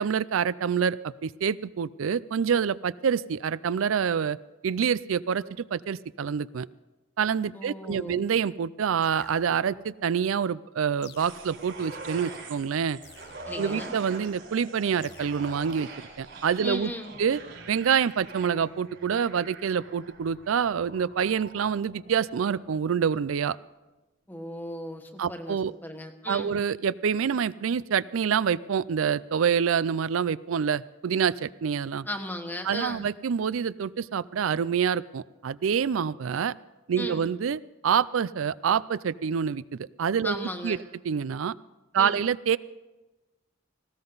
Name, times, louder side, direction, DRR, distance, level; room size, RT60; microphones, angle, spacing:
voice 1, 0.0-4.4 4.6-6.7 7.2-13.0 13.6-15.9 16.2-16.9 17.2-17.4 17.7-23.6 25.2-25.7 26.3-32.1 32.6-36.5 36.9-40.8 41.0-41.5 41.9-42.6, right 7 dB, 85° right, 19 dB, 0.4 m, -27 dB
voice 2, 7.5-8.2 13.4-13.9 16.6-17.1 24.3-26.6 32.0-33.0 37.0-37.2 40.2-40.8 42.0-42.2, left 1 dB, 10° left, 5 dB, 1.2 m, -36 dB
sound 1, 9.0-9.9 11.0-11.9 13.0-13.9 15.0-15.9, left 5 dB, 55° left, 0.9 m, -51 dB
sound 2, 11.2-22.7 23.0-23.1, right 3 dB, 65° right, 4.5 m, -44 dB
19.0 x 16.5 x 4.0 m, 1.1 s
head